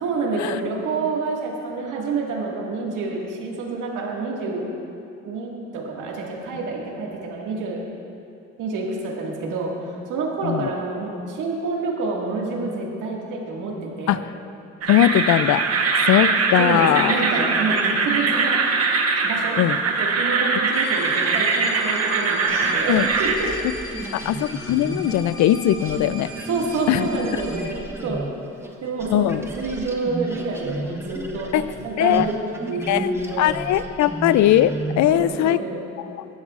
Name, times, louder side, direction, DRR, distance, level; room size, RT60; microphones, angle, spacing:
voice 1, 0.0-4.7 5.2-7.8 8.6-14.2 16.6-18.6 19.2-19.6 19.9-22.4 22.7-23.5 23.8-24.3 26.5-28.2 28.8-33.5 35.1-35.8, right 3 dB, 85° right, -2 dB, 2.0 m, -28 dB
sound 1, 14.8-23.3, right 4 dB, 55° right, 1.1 m, -22 dB
voice 2, 14.9-15.6 16.1-17.2 19.6-19.8 22.9-23.1 24.1-26.3 26.9-27.1 29.1-29.4 31.5-31.7 32.0-32.3 32.9-33.1 33.4-35.6 35.9-36.3, left 12 dB, 70° left, 15 dB, 0.4 m, -20 dB
sound 2, 20.7-27.7, equal, 15° left, 2.4 m, -40 dB
sound 3, 22.5-28.7 29.0-35.2, right 1 dB, 10° right, 1.1 m, -34 dB
16.0 x 11.5 x 2.5 m, 2.6 s
cardioid pair, 90°, 30 cm